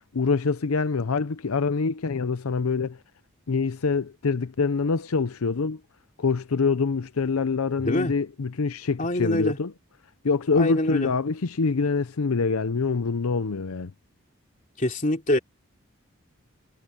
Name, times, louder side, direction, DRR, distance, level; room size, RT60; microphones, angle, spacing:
voice 1, 0.1-3.0 3.5-5.8 6.2-9.7 10.2-13.9, left 4 dB, 85° left, 0.6 m, -25 dB
voice 2, 7.8-8.1 9.0-9.6 10.6-11.1 14.8-15.4, left 1 dB, 35° left, 3.2 m, -25 dB
head